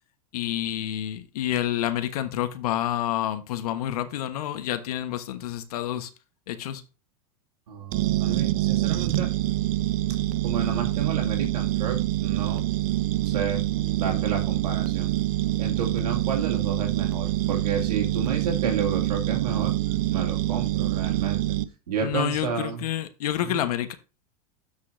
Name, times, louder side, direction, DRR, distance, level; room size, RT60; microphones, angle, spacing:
voice 1, 0.3-6.1 6.5-6.8 22.0-23.9, left 12 dB, 75° left, 1.3 m, -28 dB
voice 2, 7.7-9.3 10.4-12.6 13.3-13.6 13.9-15.1 15.6-19.8 20.1-21.4 21.9-22.8 23.5-23.6, right 6 dB, 90° right, 2.7 m, -31 dB
sound 1, 7.9-21.6, right 15 dB, 65° right, 0.9 m, -26 dB
13.0 x 5.6 x 2.7 m
hypercardioid pair, 125°, 20 cm